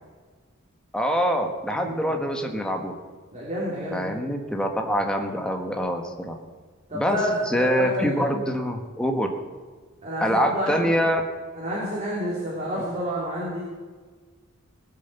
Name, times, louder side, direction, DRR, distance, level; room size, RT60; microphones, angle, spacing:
voice 1, 0.9-2.9 3.9-6.4 6.9-7.2 7.5-9.3 10.2-11.2, equal, 5° left, 3 dB, 1.4 m, -25 dB
voice 2, 1.7-2.2 3.3-4.2 6.9-8.3 10.0-11.0 11.6-13.6, equal, 35° right, -6 dB, 3.5 m, -29 dB
19.0 x 7.9 x 7.0 m, 1.5 s
head